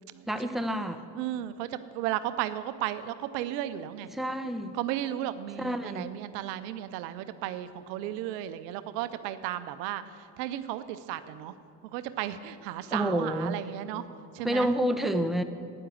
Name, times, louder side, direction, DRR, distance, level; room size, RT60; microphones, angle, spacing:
voice 1, 0.3-1.0 4.1-4.8 5.6-6.1 12.9-13.6 14.4-15.4, right 1 dB, ahead, 7 dB, 0.9 m, -29 dB
voice 2, 1.2-4.1 4.7-11.5 11.8-14.1 14.3-14.7, right 12 dB, 85° right, 13 dB, 0.7 m, -34 dB
10.0 x 9.7 x 7.7 m, 2.4 s
hypercardioid pair, 60°, 48 cm